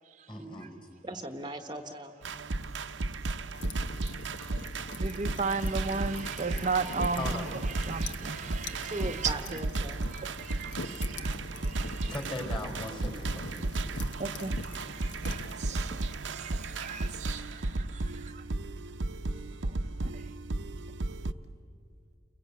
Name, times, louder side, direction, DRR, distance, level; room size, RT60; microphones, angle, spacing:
voice 1, 0.3-0.7 7.2-7.5 7.9-8.0 12.1-13.6, left 1 dB, 25° left, 4.7 m, -38 dB
voice 2, 1.0-2.2 8.8-10.0, right 2 dB, 25° right, 1.0 m, -38 dB
sound 1, 2.2-21.3, right 2 dB, 90° right, 0.8 m, -34 dB
sound 2, 3.5-15.5, left 3 dB, 75° left, 1.2 m, -44 dB
voice 3, 4.9-7.4 7.8-9.3 10.1-12.1 14.2-18.4 20.0-20.2, right 4 dB, 40° right, 0.6 m, -36 dB
30.0 x 22.5 x 8.3 m
head